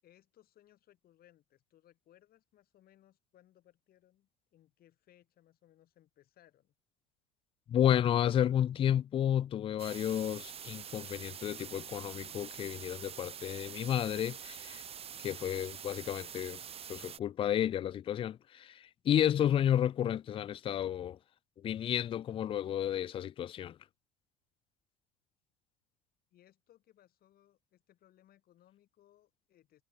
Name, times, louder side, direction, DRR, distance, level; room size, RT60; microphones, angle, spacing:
voice 1, 0.0-6.7 26.3-29.8, left 12 dB, 50° left, 7.1 m, -65 dB
voice 2, 7.7-14.8 15.2-16.6 16.9-21.2 21.6-23.8, left 10 dB, 30° left, 0.4 m, -31 dB
sound 1, 9.8-17.2, right 8 dB, 30° right, 0.9 m, -46 dB
hypercardioid pair, 75°, 19 cm